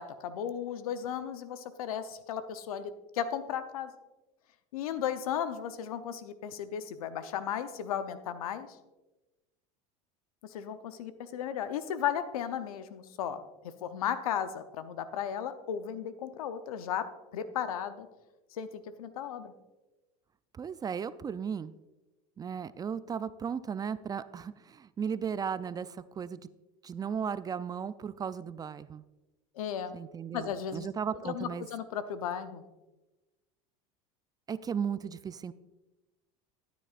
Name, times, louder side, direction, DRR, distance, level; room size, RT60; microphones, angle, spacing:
voice 1, 0.0-3.9 4.7-8.7 10.4-13.4 13.8-18.1 18.6-19.5 29.6-30.0 30.3-30.9 31.2-32.6, left 9 dB, 85° left, 11 dB, 0.8 m, -35 dB
voice 2, 20.5-21.8 22.4-26.4 26.8-29.0 29.9-31.7 34.5-35.5, right 7 dB, 20° right, 15 dB, 0.3 m, -36 dB
13.5 x 9.2 x 2.5 m, 1.1 s
hypercardioid pair, 100°, 18 cm